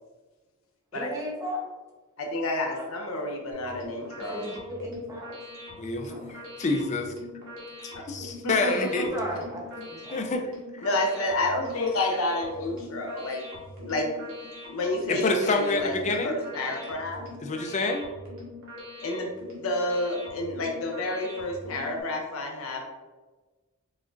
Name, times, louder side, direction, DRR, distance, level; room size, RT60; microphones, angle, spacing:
voice 1, 0.9-1.6 2.7-2.9 4.3-5.4 6.1-6.3 8.7-10.2, equal, 15° right, -3 dB, 0.7 m, -36 dB
voice 2, 2.2-4.5 8.4-9.1 10.8-13.4 13.8-14.1 14.4-15.9 16.2-17.2 19.0-19.3 19.6-22.8, left 2 dB, 80° left, 1 dB, 0.6 m, -29 dB
sound 1, 3.5-22.0, left 1 dB, 85° right, 1.3 m, -43 dB
voice 3, 5.8-7.1 7.8-9.1 9.8-9.9 10.1-10.9 15.1-16.4 17.4-18.1, left 3 dB, 35° left, 4 dB, 0.4 m, -28 dB
4.9 x 2.5 x 2.5 m, 1.3 s
head